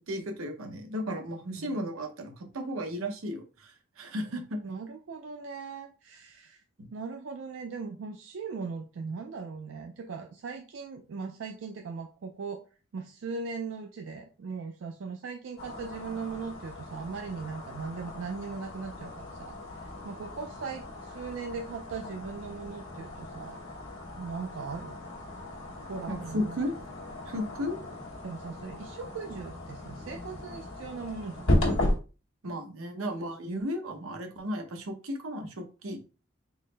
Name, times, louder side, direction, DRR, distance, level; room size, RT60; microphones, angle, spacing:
voice 1, 0.1-4.6 6.8-6.9 26.1-26.7 27.3-27.8 32.4-36.0, equal, 90° right, 4 dB, 0.8 m, -34 dB
voice 2, 4.6-6.6 6.9-12.6 12.9-23.6 24.2-25.0 25.9-26.6 28.2-31.5 33.1-33.2, right 5 dB, 70° right, 4 dB, 0.4 m, -39 dB
sound 1, 15.6-32.0, left 1 dB, 85° left, 1.1 m, -35 dB
3.9 x 2.1 x 3.9 m, 0.34 s
head